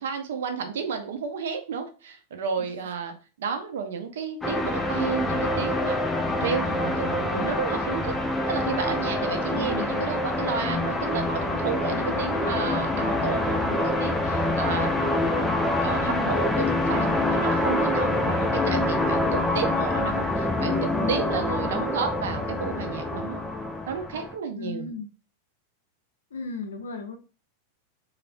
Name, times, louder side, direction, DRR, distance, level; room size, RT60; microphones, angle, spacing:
voice 1, 0.0-6.0 6.3-8.1 8.5-15.5 15.8-23.4 23.9-24.9, right 6 dB, 60° right, 6 dB, 0.5 m, -32 dB
sound 1, 4.4-24.3, left 2 dB, 10° left, 0.4 m, -26 dB
voice 2, 9.5-10.0 11.9-12.3 21.0-21.2 21.6-21.8 24.6-25.1 26.3-27.2, left 4 dB, 65° left, 6 dB, 0.5 m, -36 dB
3.3 x 2.1 x 2.5 m, 0.35 s
figure-of-eight pair, 90°, 0 cm